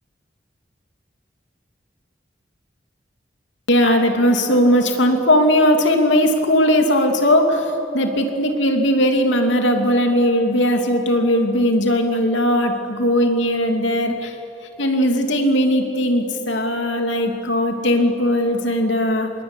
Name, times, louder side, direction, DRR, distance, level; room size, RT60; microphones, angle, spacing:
voice 1, 3.7-14.3 14.8-19.3, equal, 85° left, 4 dB, 3.0 m, -18 dB
26.0 x 22.0 x 10.0 m, 3.0 s
head